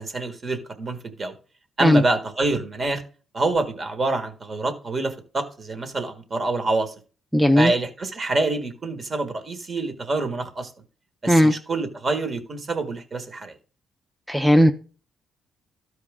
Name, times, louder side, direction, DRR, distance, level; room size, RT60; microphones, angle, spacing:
voice 1, 0.0-1.3 1.8-3.0 3.3-6.9 7.5-10.7 11.2-13.5, right 2 dB, 35° right, 1.5 m, -26 dB
voice 2, 7.3-7.7 11.3-11.5 14.3-14.7, equal, ahead, 0.5 m, -16 dB
12.5 x 4.7 x 3.6 m
cardioid pair, 90°, 0 cm